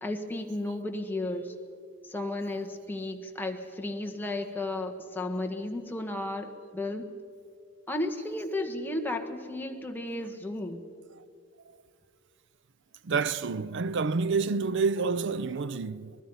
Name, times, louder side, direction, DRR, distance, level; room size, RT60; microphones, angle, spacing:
voice 1, 0.0-1.5 2.1-7.1 7.9-10.8, left 2 dB, 10° left, 1.5 m, -33 dB
voice 2, 13.0-16.2, right 4 dB, 60° right, 0.5 m, -28 dB
24.5 x 20.0 x 5.6 m
head